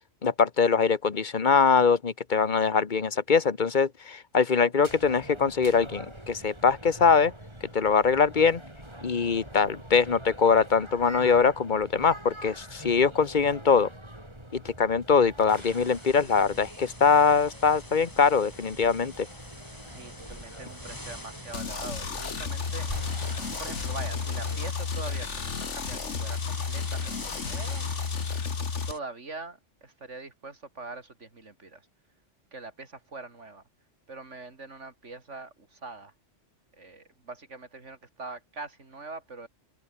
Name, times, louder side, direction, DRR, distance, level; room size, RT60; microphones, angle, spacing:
voice 1, 0.2-7.3 7.7-8.6 9.0-13.9 14.5-19.3, left 5 dB, 40° left, 1.4 m, -23 dB
sound 1, 4.8-24.7, right 1 dB, 25° right, 5.3 m, -45 dB
sound 2, 15.5-29.0, left 1 dB, 15° left, 2.7 m, -45 dB
voice 2, 19.9-22.9 23.6-27.9 28.9-31.9 32.5-33.6 34.1-36.1 36.7-39.5, right 3 dB, 85° right, 3.5 m, -43 dB
sound 3, 21.5-28.9, left 5 dB, 80° left, 2.0 m, -32 dB
open air
omnidirectional pair, 1.2 m